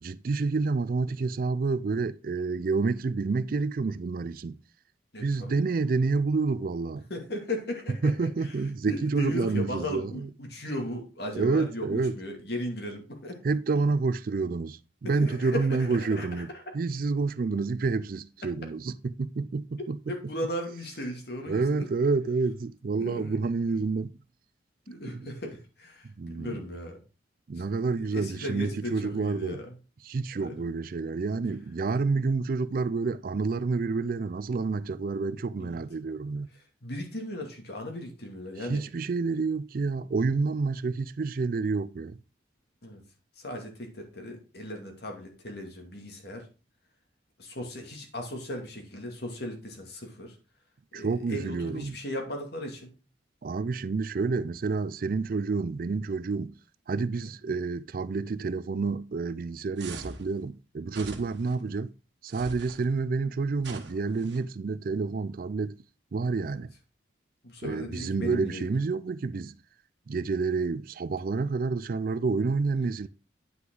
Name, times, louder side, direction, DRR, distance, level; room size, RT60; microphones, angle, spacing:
voice 1, 0.0-4.6 5.2-7.0 8.0-10.3 11.3-12.2 13.4-20.0 21.5-24.1 25.1-25.3 26.2-26.6 27.5-29.6 30.0-36.5 38.6-42.2 50.9-52.0 53.4-56.5 56.9-61.9 62.2-65.8 66.1-66.7 67.6-69.5 70.1-73.1, right 4 dB, 50° right, 0.4 m, -29 dB
voice 2, 5.1-5.6 7.1-8.5 8.9-13.4 15.0-16.4 20.1-21.9 23.0-23.4 24.9-27.0 27.6-27.7 28.1-29.8 30.4-30.7 35.6-35.8 36.8-38.8 42.8-43.0 43.4-46.5 47.4-50.3 50.9-52.9 61.6-61.8 66.4-66.6 67.4-68.7, left 1 dB, 60° left, 2.4 m, -37 dB
sound 1, 59.8-60.3 60.9-61.5 62.3-62.8 63.6-64.4, right 3 dB, 70° right, 1.4 m, -43 dB
9.6 x 5.8 x 3.8 m
head